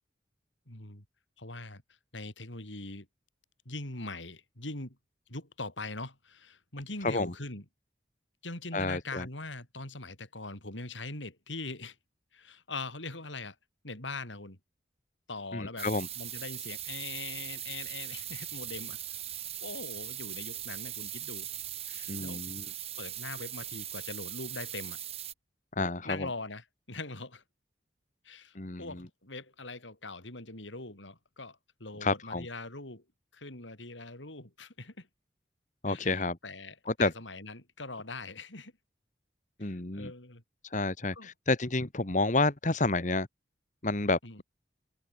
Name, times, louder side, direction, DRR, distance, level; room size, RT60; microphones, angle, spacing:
voice 1, 0.7-1.0 1.4-1.8 2.1-3.1 3.6-5.0 5.3-7.6 8.4-12.0 12.3-13.6 13.8-14.6 15.3-15.9 16.2-19.0 19.6-21.5 21.9-22.4 23.0-25.0 26.0-27.4 28.2-33.0 33.3-35.1 35.9-38.7 39.6-40.4 41.1-41.3 44.2-44.4, left 3 dB, 90° left, 6.0 m, -42 dB
voice 2, 8.7-9.3 15.5-16.1 22.1-22.6 25.8-26.3 28.6-29.0 32.0-32.5 35.8-36.4 36.9-37.1 39.6-40.1 40.7-43.3 43.8-44.2, left 2 dB, 40° left, 1.8 m, -29 dB
sound 1, 15.8-25.3, right 11 dB, 35° right, 3.5 m, -40 dB
open air
head